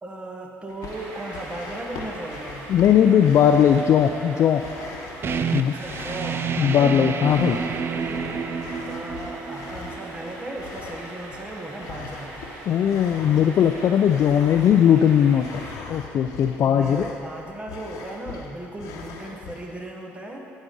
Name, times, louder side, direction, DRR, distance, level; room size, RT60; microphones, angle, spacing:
voice 1, 0.0-2.7 5.6-7.0 7.5-8.4 8.9-12.4 16.6-20.5, right 1 dB, 20° right, 1 dB, 1.2 m, -37 dB
sound 1, 0.7-19.9, left 5 dB, 75° left, 1.0 m, -41 dB
sound 2, 0.8-15.8, right 1 dB, 85° right, 1.6 m, -41 dB
voice 2, 2.7-4.6 5.5-5.7 6.6-7.6 12.7-15.4 15.9-17.0, left 9 dB, 55° left, 4 dB, 0.4 m, -18 dB
sound 3, 5.2-10.7, right 6 dB, 45° right, 0.3 m, -29 dB
14.5 x 5.3 x 3.8 m, 2.8 s
supercardioid pair, 75°, 6 cm